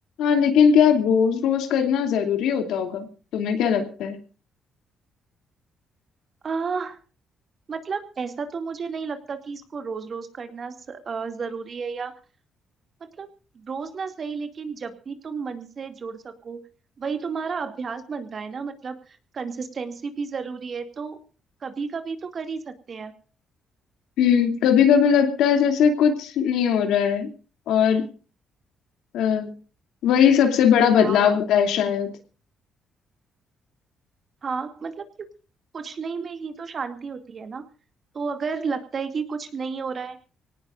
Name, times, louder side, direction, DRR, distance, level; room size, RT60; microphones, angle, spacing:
voice 1, 0.2-3.1 3.3-4.2 24.2-27.3 27.7-28.1 29.1-29.5 30.0-32.1, left 7 dB, 85° left, 6 dB, 2.8 m, -19 dB
voice 2, 6.4-7.0 7.7-12.1 13.0-13.3 13.5-16.7 17.0-21.2 21.6-23.1 31.0-31.4 34.4-35.3 35.7-37.6 38.1-40.2, right 5 dB, 45° right, 8 dB, 2.4 m, -32 dB
25.0 x 18.0 x 2.5 m, 0.36 s
cardioid pair, 90°, 0 cm